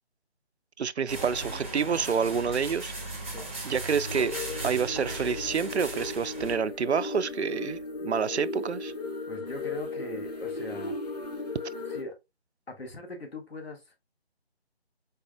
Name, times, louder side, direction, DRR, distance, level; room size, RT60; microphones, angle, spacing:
voice 1, 0.8-2.9 3.6-4.3 4.6-8.9, right 6 dB, 90° right, 0.5 m, -28 dB
sound 1, 1.1-6.6, right 2 dB, 15° right, 0.7 m, -37 dB
sound 2, 4.0-12.0, left 3 dB, 40° left, 1.2 m, -36 dB
voice 2, 9.3-11.0 11.9-12.1 12.7-14.0, left 2 dB, 65° left, 2.0 m, -40 dB
5.5 x 4.1 x 2.3 m
figure-of-eight pair, 160°, 32 cm